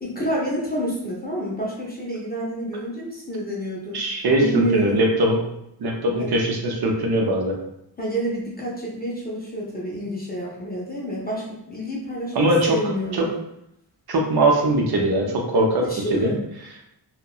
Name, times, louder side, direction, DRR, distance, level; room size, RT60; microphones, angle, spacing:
voice 1, 0.0-4.0 4.4-5.1 6.2-6.3 8.0-13.3 15.8-16.4, equal, 25° left, -4 dB, 0.4 m, -28 dB
voice 2, 3.9-5.4 5.8-7.6 12.3-12.8 13.1-13.3 14.1-16.3, right 1 dB, 60° right, 0 dB, 0.6 m, -21 dB
2.7 x 2.1 x 2.3 m, 0.79 s
wide cardioid pair, 145°, 44 cm